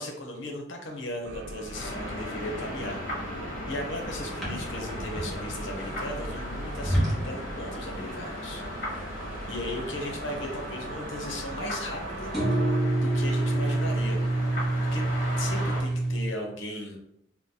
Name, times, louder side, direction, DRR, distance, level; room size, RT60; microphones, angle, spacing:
voice 1, 0.0-3.4 3.7-9.1 9.5-12.4 13.0-14.2 14.9-15.0 15.4-17.0, left 1 dB, 70° left, 2 dB, 0.7 m, -37 dB
sound 1, 1.2-12.8, right 2 dB, 55° right, 0.3 m, -41 dB
sound 2, 1.7-15.8, left 1 dB, 40° left, 0.9 m, -37 dB
sound 3, 4.4-7.5 7.7-8.2 8.5-8.6 8.9-9.7 10.0-10.8 12.3-16.3, right 1 dB, ahead, 0.8 m, -27 dB
2.7 x 2.1 x 3.7 m, 0.76 s
head